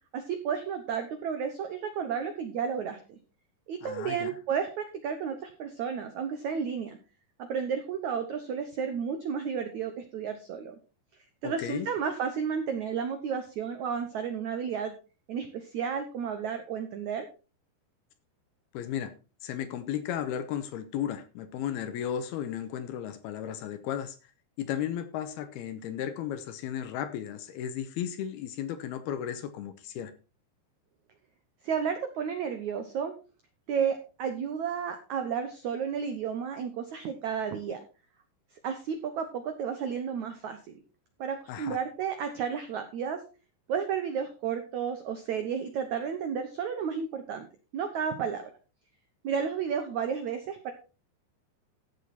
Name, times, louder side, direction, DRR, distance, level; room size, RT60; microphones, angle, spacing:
voice 1, 0.1-3.2 3.7-7.0 7.5-10.7 11.4-14.9 15.3-17.3 31.6-33.1 33.7-37.8 38.6-40.8 41.2-43.2 43.7-47.5 47.7-48.5 49.2-50.7, right 7 dB, 90° right, 1.6 m, -32 dB
voice 2, 3.8-4.3 11.4-11.9 18.7-19.1 19.4-24.2 24.6-30.1 41.5-41.8, left 10 dB, 75° left, 2.6 m, -34 dB
14.5 x 6.9 x 4.3 m
omnidirectional pair, 5.0 m